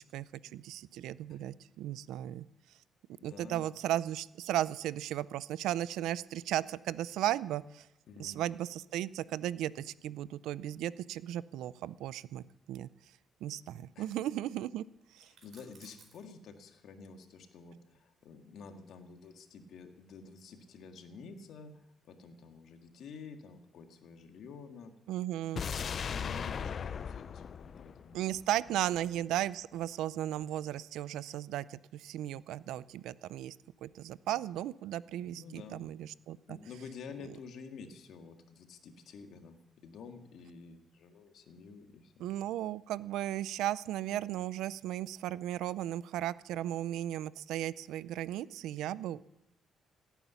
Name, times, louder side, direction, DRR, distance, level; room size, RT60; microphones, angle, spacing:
voice 1, 0.5-2.5 3.2-7.9 8.2-12.9 13.4-14.8 15.1-15.3 25.1-25.6 28.1-33.6 33.8-36.6 42.2-49.2, right 13 dB, 90° right, 19 dB, 0.4 m, -35 dB
voice 2, 3.2-3.7 8.1-8.4 14.0-14.1 15.3-25.2 25.5-28.2 28.7-28.8 34.3-34.4 35.2-35.9 36.5-42.2, left 5 dB, 75° left, 5 dB, 1.8 m, -50 dB
sound 1, 15.2-16.3 18.2-19.7, right 4 dB, 50° right, 4.5 m, -61 dB
sound 2, 25.6-28.7 29.0-29.1, left 7 dB, 50° left, 0.4 m, -38 dB
17.0 x 9.1 x 7.1 m, 0.88 s
cardioid pair, 90°, 0 cm